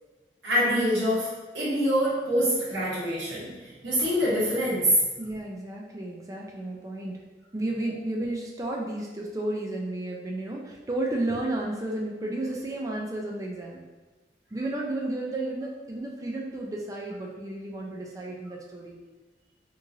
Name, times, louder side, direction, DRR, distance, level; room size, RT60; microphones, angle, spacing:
voice 1, 0.4-5.0, equal, 80° right, -9 dB, 1.2 m, -25 dB
voice 2, 5.2-7.2 7.5-13.8 14.5-19.0, right 1 dB, 20° right, -2 dB, 0.3 m, -32 dB
3.0 x 2.4 x 2.6 m, 1.2 s
head